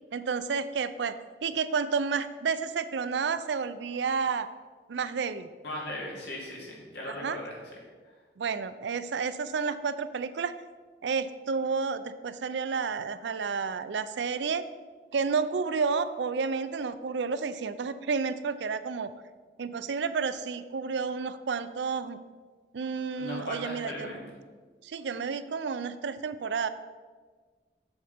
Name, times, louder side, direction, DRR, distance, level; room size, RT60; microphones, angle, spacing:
voice 1, 0.1-4.5 4.9-5.5 7.1-7.4 8.4-10.5 11.0-14.6 15.1-19.1 19.6-22.2 22.7-24.3 24.8-26.7, right 5 dB, 85° right, 13 dB, 0.5 m, -31 dB
voice 2, 5.6-7.6 23.2-24.2, left 1 dB, 75° left, -3 dB, 2.5 m, -38 dB
7.1 x 6.5 x 5.1 m, 1.5 s
head